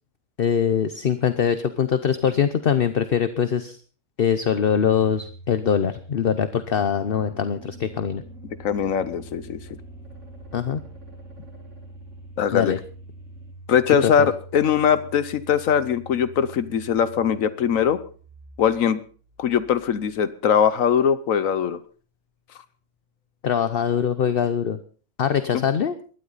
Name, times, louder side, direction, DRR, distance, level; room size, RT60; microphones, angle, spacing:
voice 1, 0.4-3.8 4.2-8.2 10.5-10.8 12.5-12.8 14.0-14.3 23.4-24.8 25.2-26.0, left 7 dB, 50° left, 11 dB, 0.9 m, -22 dB
Domestic sounds home sounds, 4.5-21.4, right 2 dB, 25° left, 6.2 m, -45 dB
sound 1, 6.7-13.5, right 1 dB, 60° right, 6.9 m, -49 dB
voice 2, 8.6-9.6 12.4-12.7 13.7-18.0 18.6-19.0 19.4-21.8 25.5-25.6, left 8 dB, 75° left, 14 dB, 1.3 m, -21 dB
19.5 x 13.0 x 4.0 m, 0.40 s
omnidirectional pair, 1.4 m